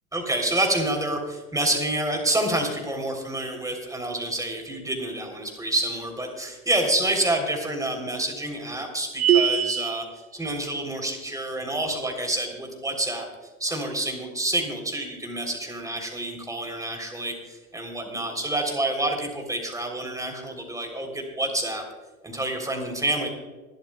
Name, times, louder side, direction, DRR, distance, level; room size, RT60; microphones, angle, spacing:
voice 1, 0.1-10.0 10.3-13.3 13.6-21.8 22.2-23.3, right 1 dB, 10° right, 3 dB, 3.3 m, -28 dB
sound 1, 9.2-10.1, right 9 dB, 70° right, 1.0 m, -21 dB
26.5 x 12.5 x 2.3 m, 1.2 s
figure-of-eight pair, 85°, 43 cm